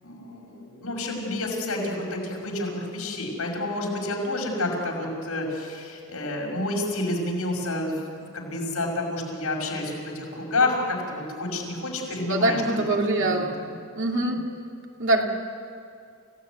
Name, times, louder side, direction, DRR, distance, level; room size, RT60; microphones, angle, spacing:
voice 1, 0.0-7.9 8.3-12.6 13.2-13.8, left 2 dB, 85° left, 0 dB, 5.9 m, -29 dB
voice 2, 12.3-13.6 13.9-14.5 15.0-15.3, right 2 dB, 60° right, 1 dB, 2.7 m, -23 dB
28.5 x 17.0 x 9.4 m, 2.4 s
head